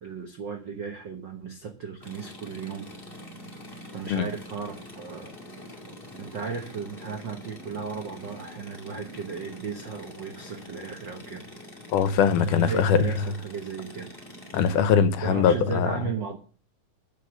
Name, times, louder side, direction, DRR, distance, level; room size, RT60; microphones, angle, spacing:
voice 1, 0.0-2.9 3.9-5.3 6.2-11.4 12.5-14.1 15.2-16.4, right 5 dB, 70° right, 1.0 m, -35 dB
sound 1, 2.0-14.7, left 1 dB, 20° left, 2.0 m, -45 dB
voice 2, 11.9-13.1 14.5-16.0, left 7 dB, 75° left, 2.3 m, -22 dB
8.4 x 7.1 x 7.8 m
omnidirectional pair, 3.9 m